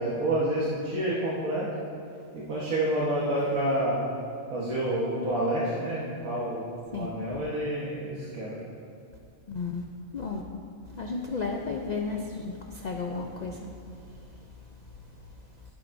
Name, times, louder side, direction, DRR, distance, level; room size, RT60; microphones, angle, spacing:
voice 1, 0.0-1.7 2.3-4.0 4.5-8.6, right 1 dB, 80° right, -8 dB, 1.7 m, -28 dB
voice 2, 9.5-9.8 10.1-10.4 10.9-15.4, left 4 dB, 85° left, 1 dB, 0.3 m, -34 dB
15.0 x 7.7 x 2.6 m, 2.4 s
omnidirectional pair, 1.5 m